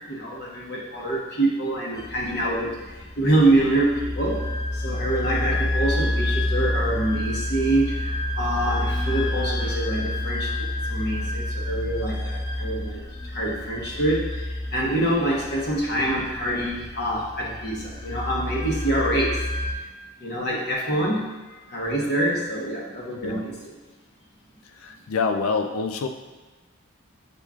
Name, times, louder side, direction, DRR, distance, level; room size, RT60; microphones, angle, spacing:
voice 1, 0.1-4.4 4.7-19.4 20.2-23.8, right 1 dB, 50° left, -4 dB, 1.0 m, -26 dB
sound 1, 1.9-19.7, left 1 dB, 20° left, 0.4 m, -29 dB
voice 2, 24.8-26.1, left 4 dB, 85° left, 7 dB, 0.4 m, -26 dB
6.8 x 3.0 x 2.4 m, 1.2 s
head